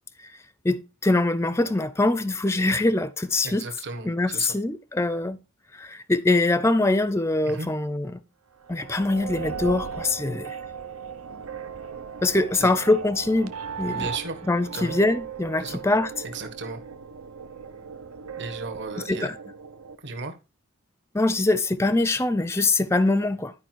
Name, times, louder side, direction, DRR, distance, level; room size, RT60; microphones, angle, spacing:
voice 1, 0.6-3.6 4.0-5.4 5.7-8.2 8.7-10.6 12.2-14.1 14.5-16.1 19.1-19.3 21.1-23.5, left 2 dB, 10° left, 0.5 m, -23 dB
voice 2, 3.4-4.5 7.4-7.7 12.5-12.7 13.9-14.5 14.7-15.0 15.6-15.8 16.2-16.8 18.4-19.3 20.0-20.3, right 3 dB, 55° right, 1.5 m, -35 dB
sound 1, 8.6-20.0, right 6 dB, 80° right, 0.8 m, -37 dB
11.5 x 5.1 x 4.6 m
head